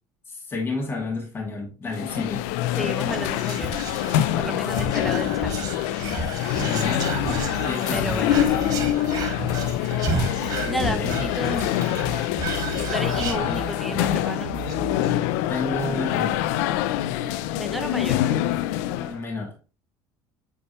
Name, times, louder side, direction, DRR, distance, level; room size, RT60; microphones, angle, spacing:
voice 1, 0.3-3.0 6.6-8.6 10.8-11.3 15.3-16.4 19.0-19.5, left 2 dB, 25° left, 2.3 m, -31 dB
sound 1, 1.9-19.2, left 12 dB, 80° left, 0.4 m, -25 dB
voice 2, 2.8-3.7 4.3-5.5 7.9-8.5 10.6-11.7 12.9-14.6 17.5-18.2, equal, ahead, 1.0 m, -31 dB
Whispering, 3.0-14.1 14.4-14.5 14.7-15.1, right 3 dB, 45° right, 1.7 m, -33 dB
sound 2, 7.0-14.9, right 10 dB, 90° right, 1.1 m, -36 dB
8.0 x 4.4 x 3.0 m
supercardioid pair, 105°, 9 cm